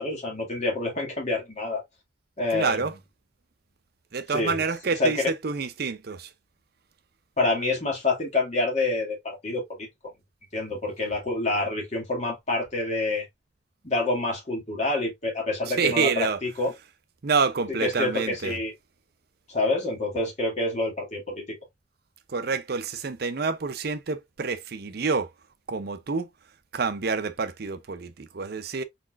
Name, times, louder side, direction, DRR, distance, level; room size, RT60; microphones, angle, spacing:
voice 1, 0.0-1.8 2.4-3.0 4.3-5.3 7.4-9.9 10.5-13.3 13.8-16.7 17.7-18.7 19.5-21.6, left 2 dB, 40° left, 2.2 m, -27 dB
voice 2, 2.5-2.9 4.1-6.3 15.7-16.4 17.2-18.6 22.3-25.3 25.7-26.3 26.7-28.8, right 5 dB, 55° right, 0.6 m, -28 dB
4.2 x 4.1 x 2.5 m
head